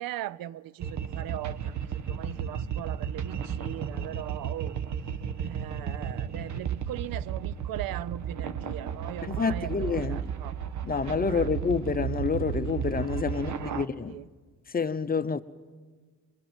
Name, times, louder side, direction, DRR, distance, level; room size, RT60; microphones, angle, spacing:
voice 1, 0.0-4.8 5.4-10.5 11.2-11.5 13.3-14.3, right 13 dB, 75° right, 0.7 m, -39 dB
sound 1, 0.8-13.9, right 8 dB, 55° right, 1.3 m, -34 dB
voice 2, 9.2-10.2 10.8-14.2 14.7-15.4, left 5 dB, 25° left, 0.8 m, -28 dB
23.0 x 22.0 x 7.6 m
cardioid pair, 90°, 35 cm